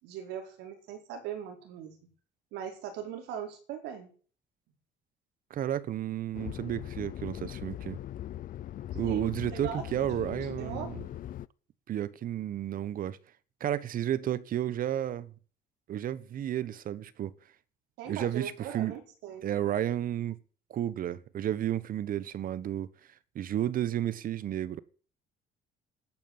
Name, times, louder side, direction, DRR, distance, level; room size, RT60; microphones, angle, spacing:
voice 1, 0.0-2.0 2.5-4.1 9.0-10.9 18.0-19.5, right 8 dB, 90° right, 4.8 m, -40 dB
voice 2, 5.5-8.0 8.9-11.0 11.9-13.2 13.6-15.3 15.9-17.3 18.1-19.0 19.4-20.4 20.7-22.9 23.3-24.8, right 11 dB, 55° right, 1.3 m, -32 dB
sound 1, 6.3-11.5, left 12 dB, 55° left, 0.6 m, -40 dB
12.0 x 9.4 x 9.8 m
cardioid pair, 110°, 17 cm